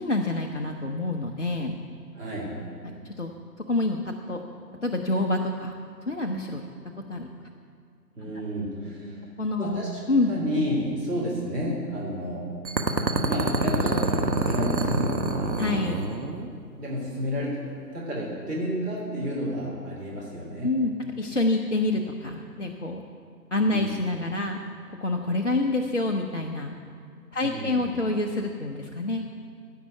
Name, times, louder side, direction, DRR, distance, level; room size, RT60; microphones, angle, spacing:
voice 1, 0.0-1.7 3.0-3.3 3.7-4.4 4.8-5.7 6.1-6.6 7.1-7.3 9.4-9.8 10.1-10.3 15.6-16.0 20.6-23.0 23.5-24.6 24.9-26.8 27.3-29.2, left 2 dB, 45° left, 1 dB, 0.7 m, -27 dB
voice 2, 2.1-2.6 8.2-9.3 9.6-10.0 10.3-12.5 13.2-15.6 16.8-17.6 17.9-20.8 23.6-23.9 27.4-27.9, equal, 70° right, -5 dB, 3.5 m, -31 dB
sound 1, 12.6-16.5, right 2 dB, 85° right, 1.3 m, -26 dB
16.0 x 5.5 x 8.2 m, 2.3 s
figure-of-eight pair, 155°, 50 cm